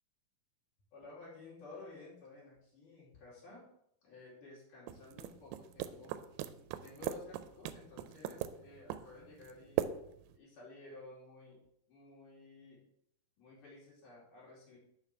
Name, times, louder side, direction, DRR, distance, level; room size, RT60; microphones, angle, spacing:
voice 1, 0.9-3.7 4.0-6.2 6.8-9.9 10.4-11.6 11.9-12.8 13.4-14.8, left 3 dB, 60° left, -5 dB, 3.9 m, -53 dB
sound 1, 4.9-10.4, right 12 dB, 90° right, 2.5 m, -41 dB
6.4 x 5.8 x 5.7 m, 0.74 s
omnidirectional pair, 4.4 m